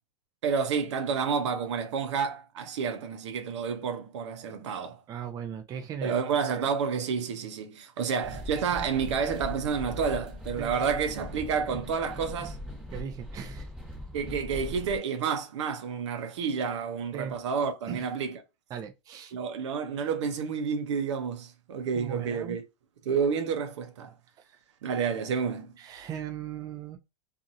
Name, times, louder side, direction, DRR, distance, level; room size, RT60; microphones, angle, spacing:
voice 1, 0.4-5.0 6.0-12.6 14.1-18.4 19.3-22.6 23.0-24.1 24.8-25.7, right 6 dB, 80° right, 0.7 m, -30 dB
voice 2, 5.1-6.1 8.0-8.1 10.6-10.7 12.9-13.7 17.1-17.4 17.9-18.0 18.7-19.4 22.0-22.6 24.4-24.6 25.8-27.0, right 8 dB, 25° right, 0.4 m, -38 dB
sound 1, 8.2-15.0, left 1 dB, 5° right, 1.2 m, -40 dB
2.7 x 2.5 x 2.5 m
supercardioid pair, 130°, 15 cm